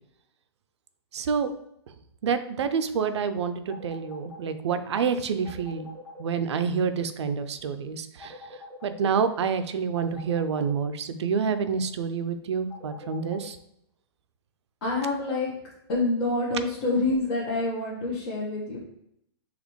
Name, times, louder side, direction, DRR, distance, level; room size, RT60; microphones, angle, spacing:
voice 1, 1.1-1.5 2.2-5.9 6.2-8.4 8.8-13.6, right 6 dB, 75° right, 10 dB, 0.4 m, -28 dB
sound 1, 3.7-4.5 5.4-6.2 8.2-9.0 9.9-10.7 12.7-13.5, left 2 dB, 10° left, 1.1 m, -44 dB
voice 2, 14.8-15.5 15.9-18.8, left 2 dB, 55° left, -6 dB, 1.3 m, -27 dB
4.1 x 2.9 x 3.1 m, 0.78 s
hypercardioid pair, 135°, 14 cm